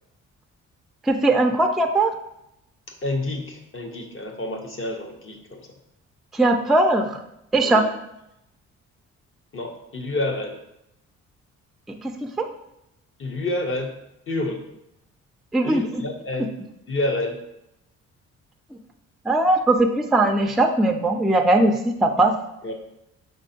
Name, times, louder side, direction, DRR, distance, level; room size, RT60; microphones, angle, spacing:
voice 1, 1.1-2.1 6.3-7.2 7.5-7.9 11.9-12.5 15.5-16.0 18.7-18.8 19.3-22.3, right 2 dB, ahead, 4 dB, 0.3 m, -20 dB
voice 2, 3.0-5.6 7.6-7.9 9.5-10.6 13.2-13.9 14.3-14.6 15.6-16.5 16.9-17.4 22.6-22.7, left 2 dB, 45° left, 3 dB, 0.7 m, -28 dB
5.2 x 3.5 x 2.7 m, 0.83 s
cardioid pair, 90°, 30 cm